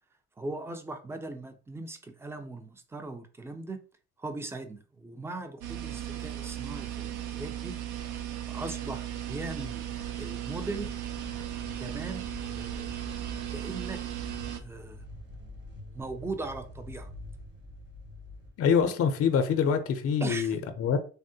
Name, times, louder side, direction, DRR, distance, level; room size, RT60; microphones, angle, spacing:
voice 1, 0.4-3.8 4.2-7.8 8.5-9.8 10.2-10.9 11.8-13.1 13.5-14.0 14.6-15.1 15.9-17.1 20.2-20.6, right 2 dB, 10° right, 0.4 m, -39 dB
sound 1, 5.6-14.6, right 11 dB, 75° right, 0.5 m, -36 dB
sound 2, 10.5-18.8, left 1 dB, 40° right, 0.9 m, -46 dB
voice 2, 18.6-21.0, left 6 dB, 50° left, 0.5 m, -25 dB
3.4 x 2.1 x 2.6 m
cardioid pair, 90°, 30 cm